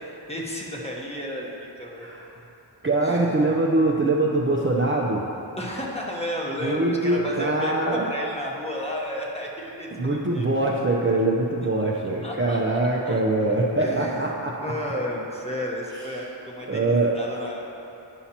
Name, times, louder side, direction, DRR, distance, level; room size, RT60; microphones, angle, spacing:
voice 1, 0.0-2.1 3.0-3.3 5.6-10.5 12.2-12.6 13.0-13.2 13.8-14.2 14.6-17.7, equal, 15° left, -3 dB, 1.1 m, -32 dB
voice 2, 2.8-5.2 6.6-8.1 9.9-14.5 16.7-17.1, right 2 dB, 25° right, -3 dB, 0.6 m, -23 dB
9.9 x 5.7 x 2.9 m, 2.9 s
cardioid pair, 40°, 45 cm